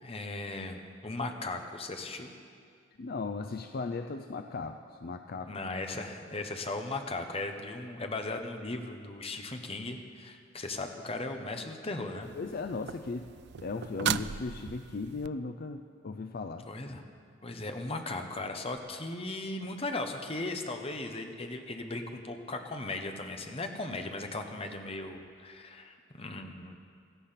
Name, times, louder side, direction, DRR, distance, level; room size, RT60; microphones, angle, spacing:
voice 1, 0.0-2.3 5.5-12.3 16.7-17.0 17.4-26.8, left 2 dB, 30° left, 5 dB, 1.2 m, -37 dB
voice 2, 3.0-5.6 12.4-13.3 13.6-16.7, left 3 dB, 50° left, 7 dB, 0.5 m, -37 dB
sound 1, 12.2-15.3 18.8-18.9, right 9 dB, 60° right, 0.4 m, -37 dB
17.0 x 13.5 x 5.8 m, 2.2 s
head